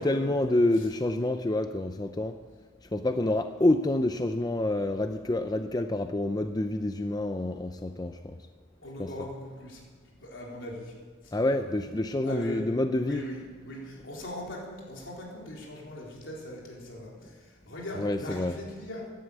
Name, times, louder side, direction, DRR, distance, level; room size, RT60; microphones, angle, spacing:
voice 1, 0.0-2.4 2.9-8.4 9.0-9.1 11.3-13.2 18.0-18.6, left 1 dB, 20° left, 8 dB, 0.5 m, -27 dB
voice 2, 8.8-9.8 10.2-10.9 12.2-12.6 13.0-17.3 17.7-19.0, left 1 dB, 70° left, -3 dB, 4.3 m, -40 dB
15.0 x 11.5 x 8.1 m, 1.5 s
head